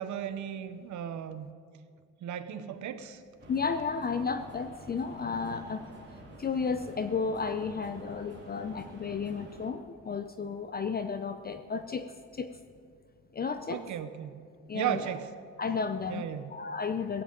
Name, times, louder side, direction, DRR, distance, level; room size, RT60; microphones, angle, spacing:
voice 1, 0.0-1.5 2.2-3.2 13.7-14.4 14.7-15.3 16.1-16.5, right 10 dB, 75° right, 12 dB, 0.9 m, -35 dB
sound 1, 3.4-9.7, right 1 dB, 35° right, 2.9 m, -49 dB
voice 2, 3.5-5.8 6.4-12.1 12.3-12.5 13.3-13.9 14.7-15.1 15.6-17.2, left 5 dB, 30° left, 9 dB, 0.6 m, -33 dB
17.0 x 15.0 x 3.9 m, 2.2 s
cardioid pair, 90°, 30 cm